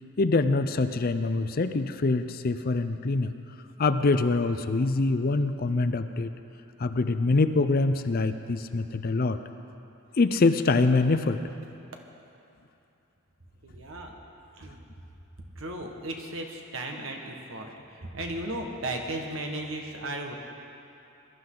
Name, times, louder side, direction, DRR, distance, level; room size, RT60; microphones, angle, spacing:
voice 1, 0.2-3.3 3.8-6.3 6.8-9.4 10.2-11.4, left 3 dB, 45° left, 10 dB, 0.5 m, -24 dB
voice 2, 13.6-14.2 14.6-14.8 15.6-20.3, right 1 dB, 70° right, 2 dB, 1.6 m, -35 dB
21.0 x 12.5 x 3.9 m, 2.8 s
head